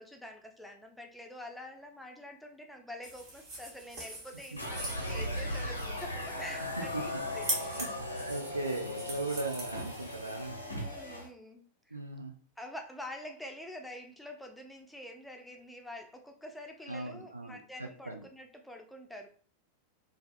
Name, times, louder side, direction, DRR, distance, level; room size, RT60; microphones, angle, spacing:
voice 1, 0.0-7.8 10.8-12.0 12.6-19.3, left 1 dB, 5° left, 3 dB, 0.3 m, -46 dB
sound 1, 3.0-10.5, right 1 dB, 45° right, 1.0 m, -42 dB
sound 2, 4.6-11.3, left 1 dB, 80° left, 0.5 m, -38 dB
voice 2, 7.5-10.6 11.9-12.3 16.9-18.2, right 2 dB, 80° right, 3 dB, 0.4 m, -38 dB
2.4 x 2.3 x 2.3 m, 0.42 s
figure-of-eight pair, 90°, 0 cm